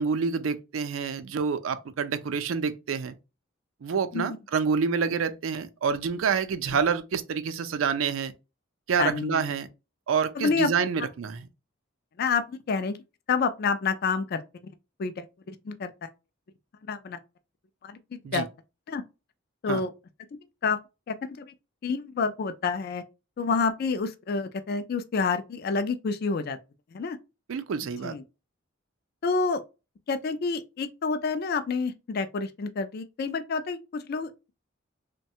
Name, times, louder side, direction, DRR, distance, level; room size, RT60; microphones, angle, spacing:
voice 1, 0.0-3.1 3.8-8.3 8.9-9.7 10.1-11.4 18.2-18.5 19.7-19.8 27.5-28.2, right 6 dB, 90° right, 0.4 m, -27 dB
voice 2, 9.0-9.5 10.4-10.7 12.2-13.0 13.3-14.4 15.0-16.1 16.9-17.2 17.8-18.5 18.9-19.0 19.6-19.9 20.3-20.8 21.1-21.5 21.8-23.0 23.4-26.6 26.9-27.2 28.0-28.2 29.2-29.6 30.1-34.5, left 4 dB, 50° left, 0.4 m, -28 dB
3.1 x 2.2 x 2.7 m
head